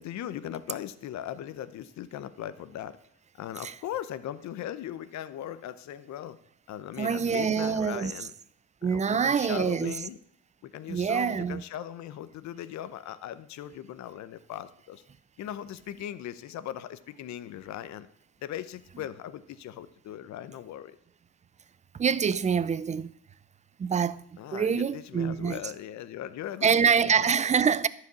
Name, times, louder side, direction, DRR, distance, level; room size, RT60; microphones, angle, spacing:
voice 1, 0.0-3.0 3.4-6.4 6.7-8.3 8.9-10.2 10.6-15.0 15.4-18.1 18.4-21.0 24.4-27.3, left 11 dB, 60° left, 0.8 m, -39 dB
voice 2, 7.0-8.1 8.8-9.9 10.9-11.6 22.0-23.1 23.8-24.2 24.5-25.6 26.6-27.9, right 6 dB, 25° right, 0.5 m, -25 dB
11.5 x 4.9 x 8.0 m
cardioid pair, 100°, 31 cm